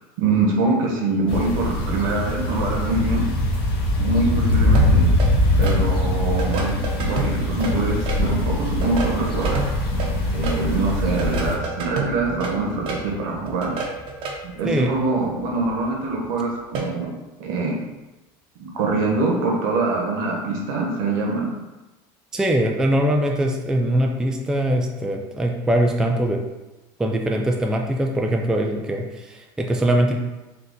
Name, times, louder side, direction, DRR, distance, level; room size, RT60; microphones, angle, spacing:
voice 1, 0.2-3.3 4.0-5.1 5.6-9.6 10.3-13.8 14.4-17.1 17.4-17.8 18.6-21.5, right 3 dB, 70° right, -1 dB, 1.2 m, -24 dB
sound 1, 1.3-11.5, left 1 dB, 50° left, 1.2 m, -22 dB
sound 2, 4.0-16.9, left 1 dB, 80° left, 1.0 m, -38 dB
sound 3, 4.7-5.8 6.4-8.2 8.7-10.6 11.2-13.0 13.5-14.3 16.7-16.9, right 4 dB, 50° right, 0.8 m, -29 dB
voice 2, 22.3-26.4 27.0-30.2, right 1 dB, 5° right, 1 dB, 0.3 m, -22 dB
4.0 x 2.7 x 3.7 m, 1.1 s
supercardioid pair, 130°, 11 cm